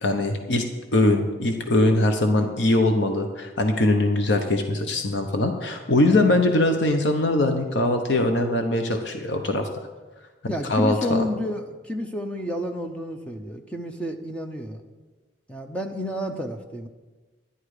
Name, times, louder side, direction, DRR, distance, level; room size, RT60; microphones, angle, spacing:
voice 1, 0.0-0.7 0.9-9.7 10.4-11.2, left 2 dB, 70° left, 5 dB, 0.9 m, -22 dB
voice 2, 10.5-14.8 15.5-16.9, equal, 5° left, 5 dB, 0.7 m, -30 dB
11.0 x 11.0 x 4.9 m, 1.3 s
head